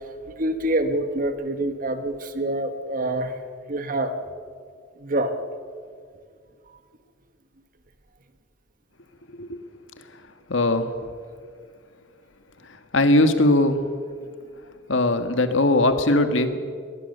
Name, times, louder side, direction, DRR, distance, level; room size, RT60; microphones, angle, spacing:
voice 1, 0.4-3.3 3.7-4.1 5.0-5.3, right 1 dB, 45° right, 8 dB, 1.6 m, -26 dB
voice 2, 10.5-10.9 12.7-13.8 14.9-16.6, left 2 dB, 90° left, 8 dB, 1.7 m, -20 dB
21.5 x 19.5 x 6.8 m, 2.1 s
head